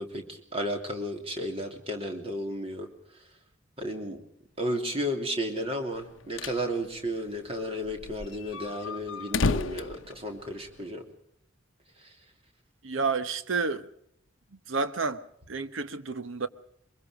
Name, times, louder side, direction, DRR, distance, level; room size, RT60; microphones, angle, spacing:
voice 1, 0.0-2.9 3.8-4.2 4.6-11.0 12.0-12.1, equal, 30° right, 2.9 m, -33 dB
sound 1, 6.0-6.6 7.0-7.1 7.3-7.4 7.8-10.9, left 4 dB, 75° left, 0.7 m, -32 dB
voice 2, 12.8-13.9 14.7-15.2 15.5-16.5, right 4 dB, 80° right, 1.1 m, -30 dB
23.5 x 22.0 x 5.0 m
head